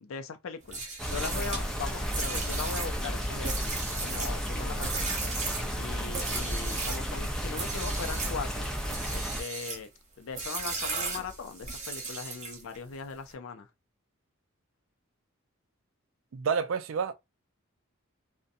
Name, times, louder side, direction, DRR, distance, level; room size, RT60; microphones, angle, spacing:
voice 1, 0.0-5.3 5.8-8.7 9.1-9.9 10.2-13.7, left 5 dB, 70° left, 0.4 m, -39 dB
sound 1, 0.6-7.1 7.5-8.4 8.8-9.9 10.4-12.8, right 4 dB, 35° right, 0.7 m, -36 dB
sound 2, 1.0-9.4, equal, 5° left, 0.5 m, -33 dB
voice 2, 16.3-17.1, right 6 dB, 65° right, 0.4 m, -29 dB
2.6 x 2.2 x 2.5 m
head